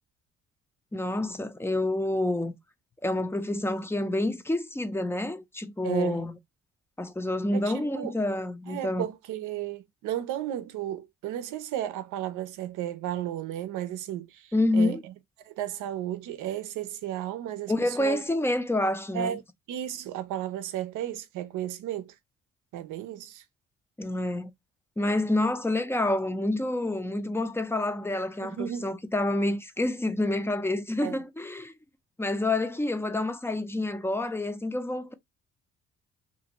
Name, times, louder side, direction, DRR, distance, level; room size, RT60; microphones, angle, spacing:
voice 1, 0.9-2.6 3.0-6.4 7.0-9.1 14.5-15.0 17.7-19.4 24.0-24.5 25.0-31.7 32.2-35.1, left 1 dB, 10° left, 0.4 m, -28 dB
voice 2, 5.8-6.2 7.5-8.1 8.7-15.0 15.5-18.2 19.1-19.4 19.7-22.1 22.7-23.4 28.4-28.9 31.0-31.2, right 11 dB, 90° right, 0.6 m, -34 dB
2.5 x 2.4 x 2.9 m
cardioid pair, 90°, 30 cm